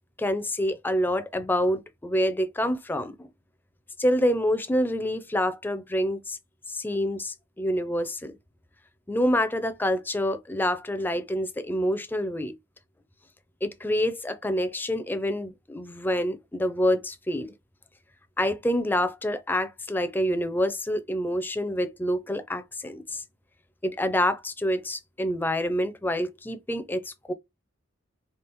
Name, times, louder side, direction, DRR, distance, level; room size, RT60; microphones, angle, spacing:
voice 1, 0.2-3.3 4.0-6.4 6.7-8.3 9.1-12.5 13.6-17.5 18.4-23.2 23.8-27.3, equal, 10° left, 0.4 m, -27 dB
3.5 x 2.3 x 3.0 m
head